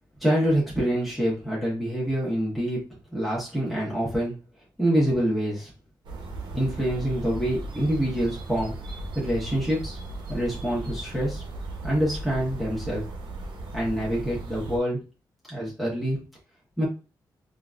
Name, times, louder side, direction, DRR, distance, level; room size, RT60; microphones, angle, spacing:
voice 1, 0.2-2.8 3.1-4.3 4.8-5.7 6.5-8.7 9.1-10.0 10.3-11.4 11.8-13.0 13.7-15.0 15.5-16.2 16.8-16.9, equal, ahead, -7 dB, 1.2 m, -26 dB
sound 1, 6.0-14.8, right 1 dB, 80° right, 0.7 m, -36 dB
3.7 x 2.5 x 2.4 m, 0.33 s
wide cardioid pair, 125°, 8 cm